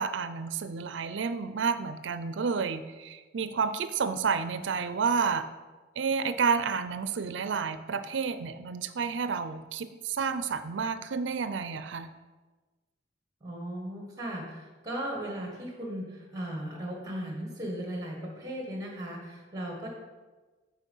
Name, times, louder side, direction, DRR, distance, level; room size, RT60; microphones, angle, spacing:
voice 1, 0.0-5.5 6.0-12.1, right 5 dB, 75° right, 12 dB, 0.5 m, -30 dB
voice 2, 13.4-19.9, right 1 dB, 20° right, -1 dB, 1.5 m, -37 dB
8.3 x 4.6 x 5.4 m, 1.3 s
head